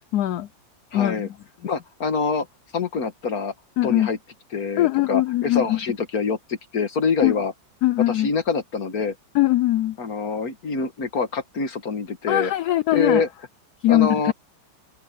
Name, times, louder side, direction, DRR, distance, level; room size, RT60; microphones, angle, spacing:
voice 1, 0.1-0.5 0.9-1.3 3.8-4.1 4.8-5.8 7.2-7.3 7.8-8.3 9.3-10.0 12.3-13.2 13.8-14.3, left 15 dB, 70° left, 1.0 m, -21 dB
voice 2, 0.9-1.3 1.6-2.5 2.7-3.5 3.8-4.2 4.5-7.5 8.1-9.2 10.0-12.5 12.9-13.3 13.9-14.3, left 5 dB, 50° left, 1.9 m, -25 dB
omnidirectional pair, 2.0 m